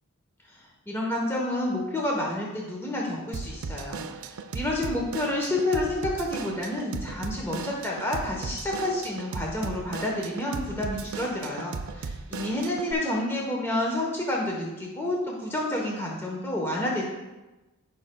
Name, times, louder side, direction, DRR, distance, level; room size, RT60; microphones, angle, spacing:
voice 1, 0.5-17.0, left 1 dB, 10° left, -2 dB, 1.0 m, -29 dB
Drum kit / Drum, 3.3-12.9, right 4 dB, 65° right, 0.5 m, -37 dB
16.5 x 5.4 x 2.2 m, 1.1 s
head